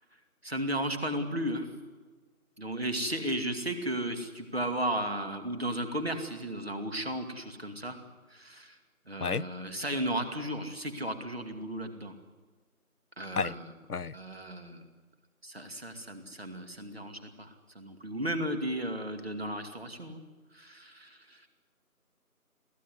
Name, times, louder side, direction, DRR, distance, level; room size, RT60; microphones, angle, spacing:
voice 1, 0.4-1.7 2.6-8.0 8.3-8.8 9.1-12.1 13.2-13.7 14.1-14.8 15.4-20.2 20.5-21.5, right 1 dB, 40° right, 2.5 m, -34 dB
voice 2, 9.2-9.5 13.4-13.5 13.9-14.2, left 5 dB, 85° left, 0.8 m, -31 dB
23.0 x 16.0 x 9.9 m
figure-of-eight pair, 175°, 44 cm